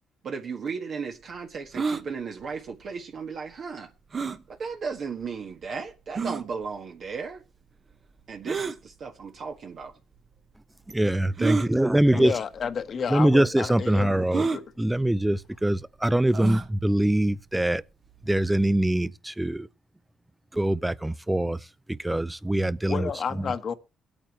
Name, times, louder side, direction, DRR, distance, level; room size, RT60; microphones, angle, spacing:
voice 1, 0.2-3.9 4.5-7.4 8.3-9.9, right 5 dB, 60° right, 1.5 m, -35 dB
sound 1, 1.7-2.0 4.1-4.4 5.2-5.3 6.2-6.4 8.4-8.8 9.8-9.9 11.4-11.7 12.6-12.8 13.0-13.1 14.3-14.6 16.3-16.7, right 4 dB, 40° right, 1.0 m, -28 dB
voice 2, 10.9-12.4 13.1-14.5 14.8-17.8 18.2-19.7 20.5-23.5, right 1 dB, 10° right, 0.5 m, -24 dB
voice 3, 12.1-14.1 14.4-14.6 22.9-23.7, left 6 dB, 50° left, 1.2 m, -31 dB
22.0 x 8.8 x 3.1 m
cardioid pair, 90°, 0 cm